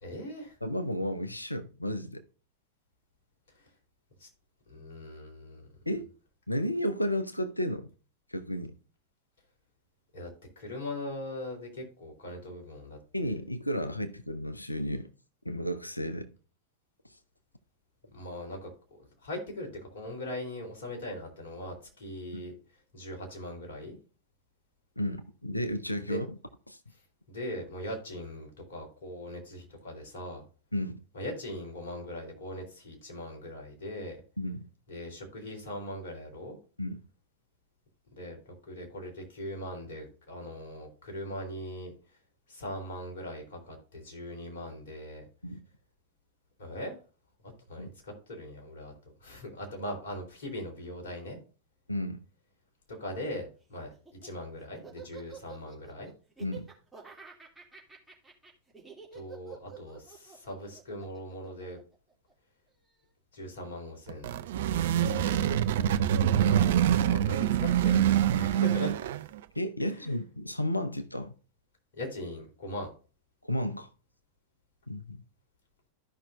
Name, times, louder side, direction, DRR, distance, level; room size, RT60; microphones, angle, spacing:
voice 1, 0.0-0.6 3.6-3.7 4.2-4.3 4.7-5.7 10.1-10.3 10.6-13.4 18.1-22.5 22.9-24.0 26.0-26.2 27.3-30.4 31.1-34.2 34.9-36.6 38.1-41.9 42.5-45.2 46.6-46.9 47.4-48.9 49.2-51.4 52.9-53.9 54.2-56.1 59.1-61.8 63.3-64.3 66.4-69.0 69.8-70.2 71.9-72.9, left 1 dB, 60° left, 3.5 m, -40 dB
voice 2, 0.6-2.2 5.9-6.1 6.5-7.9 8.3-8.7 13.1-15.1 15.4-16.3 22.3-22.4 25.0-26.3 26.7-26.8 30.7-31.0 34.4-34.7 36.8-37.0 45.4-45.6 47.8-47.9 51.9-52.2 56.4-56.7 65.0-65.6 69.5-71.3 73.4-73.9 74.9-75.2, left 1 dB, 85° left, 0.8 m, -33 dB
Laughter, 53.9-62.3, right 6 dB, 5° right, 2.6 m, -49 dB
sound 1, 64.1-69.4, right 10 dB, 55° right, 0.5 m, -25 dB
14.0 x 5.7 x 2.5 m
figure-of-eight pair, 90°, 0 cm